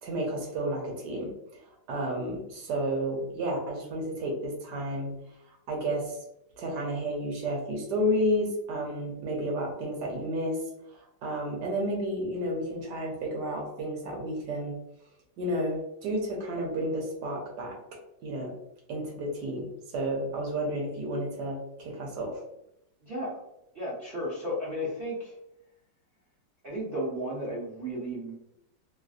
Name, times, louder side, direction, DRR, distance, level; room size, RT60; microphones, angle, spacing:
voice 1, 0.0-1.6 1.9-5.1 5.5-6.2 6.6-10.6 10.9-14.7 15.4-17.8 18.2-18.5 18.9-19.7 19.9-22.3, equal, 70° right, 0 dB, 1.3 m, -31 dB
voice 2, 23.0-23.4 23.7-25.3 26.6-28.3, equal, 55° right, -8 dB, 0.6 m, -34 dB
3.1 x 2.5 x 2.4 m, 0.81 s
omnidirectional pair, 1.9 m